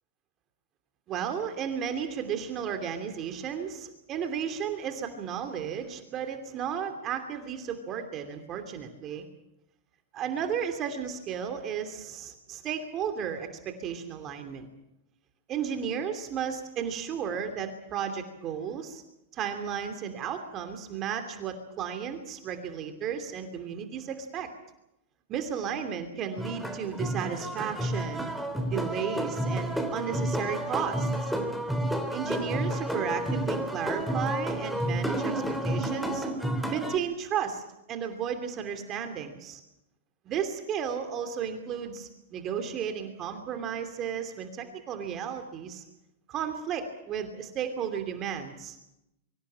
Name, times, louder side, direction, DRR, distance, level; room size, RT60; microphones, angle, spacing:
voice 1, 1.1-9.3 10.1-14.7 15.5-19.0 19.3-24.5 25.3-28.2 28.7-31.3 32.1-35.3 35.6-36.3 36.7-37.6 37.9-39.6 40.2-45.8 46.3-48.8, right 8 dB, 35° right, 7 dB, 2.9 m, -34 dB
sound 1, 26.4-37.0, right 1 dB, ahead, 3.1 m, -30 dB
24.5 x 15.0 x 8.7 m, 0.86 s
hypercardioid pair, 115°, 0 cm